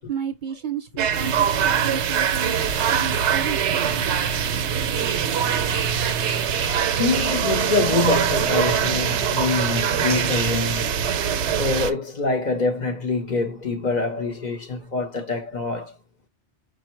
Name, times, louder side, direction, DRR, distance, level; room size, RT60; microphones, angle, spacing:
voice 1, 0.1-2.6 2.9-4.4, right 7 dB, 55° right, 0.6 m, -32 dB
sound 1, 1.0-11.9, right 8 dB, 85° right, 0.9 m, -23 dB
voice 2, 7.0-10.9 11.6-15.9, left 3 dB, 45° left, 0.7 m, -25 dB
5.2 x 2.1 x 4.3 m
omnidirectional pair, 1.1 m